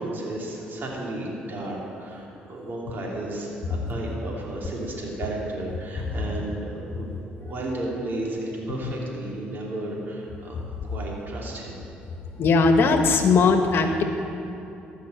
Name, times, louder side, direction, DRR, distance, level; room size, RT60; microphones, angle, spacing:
voice 1, 0.0-7.1 7.4-10.6 10.8-11.8, right 1 dB, 50° right, -3 dB, 2.9 m, -33 dB
voice 2, 12.4-14.0, left 4 dB, 60° left, 5 dB, 1.2 m, -19 dB
13.5 x 5.6 x 7.9 m, 2.9 s
supercardioid pair, 70°, 4 cm